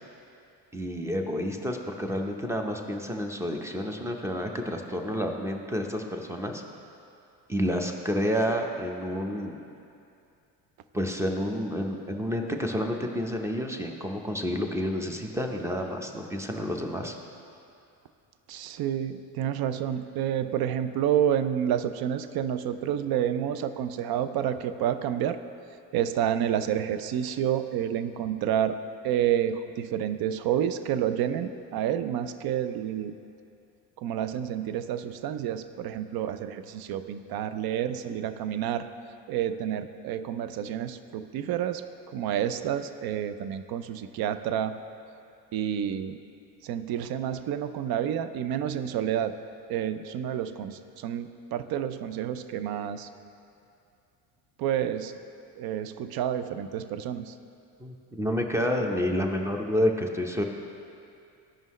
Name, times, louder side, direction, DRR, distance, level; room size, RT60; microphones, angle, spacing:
voice 1, 0.7-6.6 7.5-9.6 10.9-17.1 57.8-60.4, equal, 5° right, 3 dB, 0.8 m, -29 dB
voice 2, 18.5-25.4 25.9-28.8 29.0-33.1 34.0-38.9 39.3-41.8 42.1-44.7 45.5-46.2 46.6-49.4 49.7-53.1 54.6-55.2 55.6-57.3, right 10 dB, 50° right, 11 dB, 0.6 m, -29 dB
14.0 x 5.4 x 3.1 m, 2.5 s
supercardioid pair, 80°, 47 cm